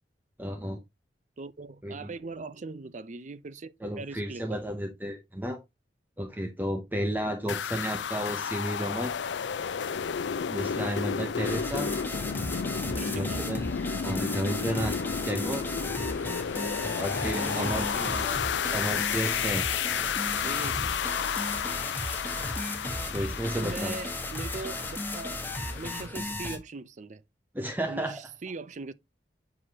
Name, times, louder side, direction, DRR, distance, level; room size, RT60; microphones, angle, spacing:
voice 1, 0.4-0.8 1.8-2.1 3.8-5.6 6.2-9.1 10.5-11.9 13.1-13.6 14.0-15.0 15.2-15.6 17.0-17.8 18.7-19.7 23.1-24.0 27.5-28.2, equal, 10° right, 0.7 m, -32 dB
voice 2, 1.4-4.6 12.2-12.5 12.8-13.5 17.4-18.4 20.4-21.0 23.5-25.4 25.7-27.2 27.9-28.9, right 3 dB, 45° right, 0.5 m, -40 dB
sound 1, 7.5-26.1, left 7 dB, 90° left, 0.4 m, -32 dB
sound 2, 11.4-26.6, left 1 dB, 10° left, 1.2 m, -35 dB
7.6 x 4.8 x 2.8 m
head